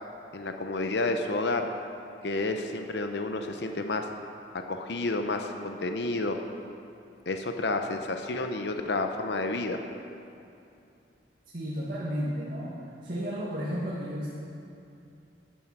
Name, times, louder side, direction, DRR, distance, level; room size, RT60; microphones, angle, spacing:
voice 1, 0.3-1.7 2.2-4.1 4.7-6.4 7.3-9.8, left 2 dB, 70° left, 5 dB, 0.7 m, -30 dB
voice 2, 11.5-12.8 13.0-14.3, equal, 50° right, -7 dB, 2.0 m, -32 dB
12.5 x 9.3 x 6.1 m, 2.6 s
head